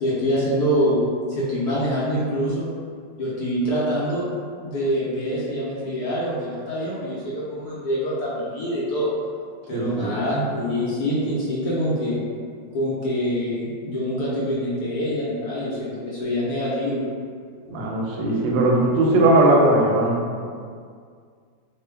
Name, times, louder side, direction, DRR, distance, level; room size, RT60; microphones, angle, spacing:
voice 1, 0.0-1.0 1.3-2.7 3.2-4.2 4.6-9.1 9.7-12.2 12.7-17.0, equal, 70° left, -7 dB, 1.1 m, -25 dB
voice 2, 9.7-10.1 17.7-20.2, right 2 dB, 80° right, -2 dB, 1.2 m, -19 dB
3.0 x 2.2 x 3.3 m, 2.1 s
omnidirectional pair, 2.0 m